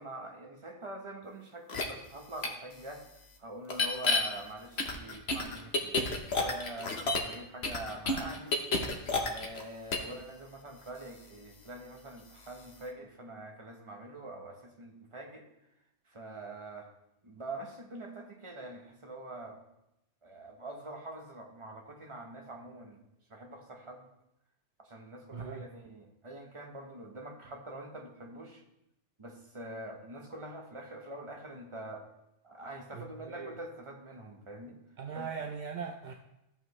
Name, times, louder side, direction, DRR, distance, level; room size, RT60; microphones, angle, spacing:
voice 1, 0.0-3.0 3.4-8.6 9.2-15.4 16.1-16.9 17.2-19.6 20.2-23.0 23.3-24.1 24.8-28.6 29.2-32.0 32.4-34.8 35.1-35.3, right 2 dB, 25° right, 1 dB, 1.1 m, -45 dB
sound 1, 1.7-1.8 2.4-2.5 3.7-4.2 4.8-7.3 7.6-9.6 9.9-10.1, left 3 dB, 60° left, 1.2 m, -30 dB
voice 2, 25.3-25.7 32.9-33.5 35.0-36.1, right 6 dB, 55° right, 4 dB, 0.5 m, -40 dB
14.0 x 5.6 x 3.2 m, 0.87 s
omnidirectional pair, 1.3 m